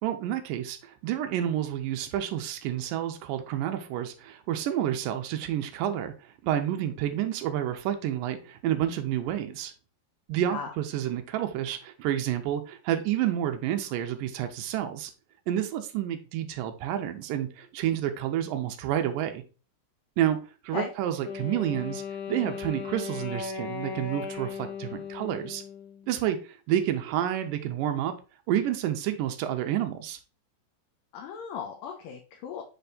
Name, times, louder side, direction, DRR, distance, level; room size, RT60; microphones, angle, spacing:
voice 1, 0.0-9.7 10.3-15.1 15.5-19.4 20.2-20.4 20.6-25.6 26.1-28.2 28.5-30.2, right 11 dB, 85° right, 2.3 m, -29 dB
Wind instrument woodwind instrument, 21.2-26.3, left 6 dB, 60° left, 2.0 m, -37 dB
voice 2, 31.1-32.6, left 7 dB, 75° left, 2.5 m, -37 dB
6.8 x 3.4 x 4.0 m
omnidirectional pair, 4.0 m